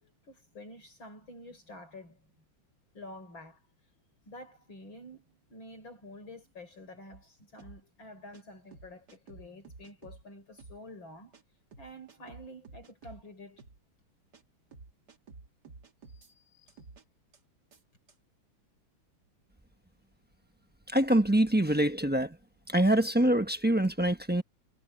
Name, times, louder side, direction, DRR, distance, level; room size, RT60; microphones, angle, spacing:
voice 1, 0.0-2.2 2.9-3.6 4.3-11.4 11.8-13.6 16.0-16.8, left 1 dB, 70° left, 6.5 m, -49 dB
sound 1, 7.1-7.2 7.6-7.8 8.3-8.4 8.7-10.2 10.6-10.8 11.3-11.4 11.7-13.2 13.6-13.8 14.3-14.4 14.7-16.3 16.7-17.0 17.3-17.4 17.7-17.8 18.1-18.2, right 4 dB, 55° right, 2.8 m, -51 dB
voice 2, 20.9-22.4 22.7-24.4, right 1 dB, 10° right, 0.5 m, -25 dB
omnidirectional pair, 2.2 m